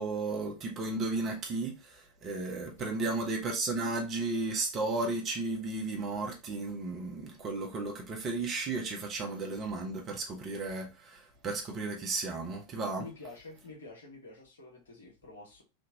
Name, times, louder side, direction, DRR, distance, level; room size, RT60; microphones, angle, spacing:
voice 1, 0.0-13.1, right 3 dB, 30° right, 1.0 m, -34 dB
voice 2, 2.8-3.2 13.0-15.6, left 3 dB, 65° left, 1.2 m, -48 dB
3.5 x 2.7 x 2.7 m
figure-of-eight pair, 90°, 0 cm